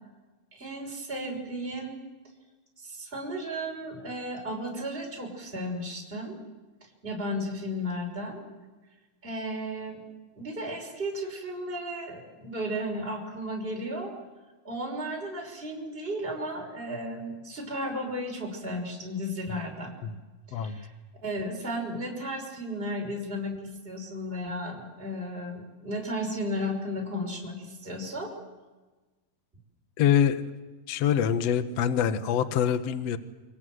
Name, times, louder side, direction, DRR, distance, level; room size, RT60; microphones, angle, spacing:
voice 1, 0.5-2.0 2.8-6.4 7.0-8.4 9.2-10.0 10.3-14.1 14.6-19.9 20.5-20.9 21.2-28.3, equal, 15° right, 0 dB, 6.2 m, -34 dB
voice 2, 20.5-20.8 30.0-30.4 30.9-33.2, left 9 dB, 60° left, 9 dB, 2.0 m, -25 dB
29.5 x 25.5 x 7.9 m, 1.2 s
omnidirectional pair, 4.0 m